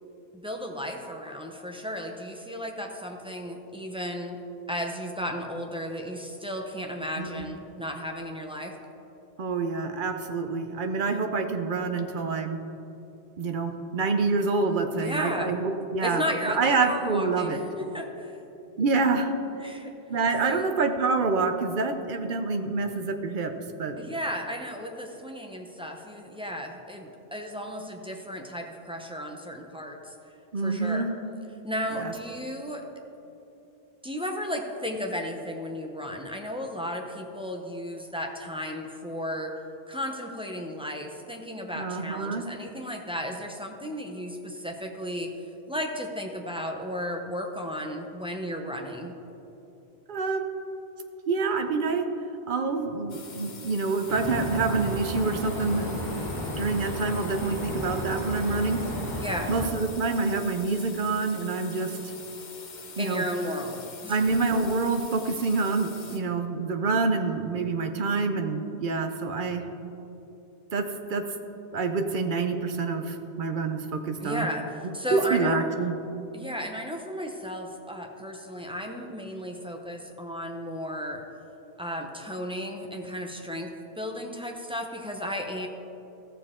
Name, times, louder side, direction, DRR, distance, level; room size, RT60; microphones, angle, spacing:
voice 1, 0.3-4.4 4.7-8.7 14.9-15.6 16.0-18.4 19.6-19.9 20.4-20.8 24.0-31.1 31.6-32.8 34.0-39.5 39.9-45.3 45.7-49.1 59.2-59.5 63.0-64.3 74.2-75.7 76.3-81.2 81.8-85.7, equal, 5° right, 2 dB, 0.6 m, -34 dB
voice 2, 9.4-12.6 13.4-17.6 18.8-19.3 20.1-23.5 23.8-23.9 30.5-31.1 32.0-32.1 41.8-42.5 50.1-50.5 51.3-52.1 52.5-56.0 56.6-58.8 59.5-61.9 63.0-63.2 64.1-69.6 70.7-71.2 71.7-74.5 75.3-75.9, right 4 dB, 55° right, 6 dB, 0.8 m, -27 dB
sound 1, 53.1-66.2, left 4 dB, 45° left, 0.9 m, -44 dB
sound 2, 54.1-59.7, equal, 15° left, 1.8 m, -33 dB
14.0 x 6.9 x 3.7 m, 2.9 s
omnidirectional pair, 1.1 m